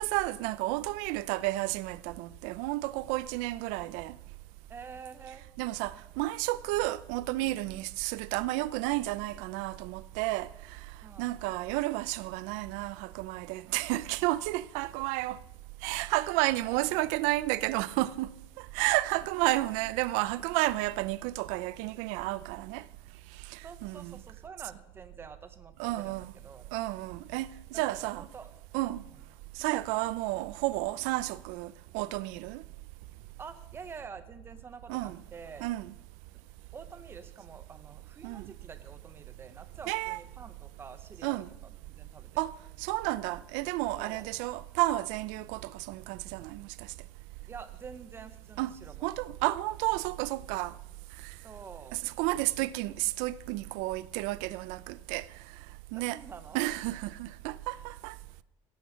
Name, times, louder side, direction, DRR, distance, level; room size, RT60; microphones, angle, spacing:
voice 1, 0.0-4.1 5.6-10.5 11.2-15.4 15.8-18.3 18.6-22.8 23.5-24.2 25.8-26.3 26.7-28.3 28.7-29.0 29.6-32.6 34.9-35.2 35.6-35.9 38.2-38.5 39.9-40.2 41.2-41.5 42.4-42.5 42.8-46.7 48.6-48.7 49.0-50.7 51.9-55.3 55.9-56.2 56.5-58.1, right 18 dB, 85° right, 0.6 m, -31 dB
voice 2, 4.7-5.5 11.0-11.3 16.4-16.8 23.6-26.7 27.7-28.5 29.1-29.2 33.4-35.7 36.7-42.3 44.0-44.3 47.5-49.1 51.4-52.0 55.9-56.6, right 5 dB, 20° right, 0.9 m, -48 dB
17.0 x 8.3 x 5.8 m
cardioid pair, 170°, 12 cm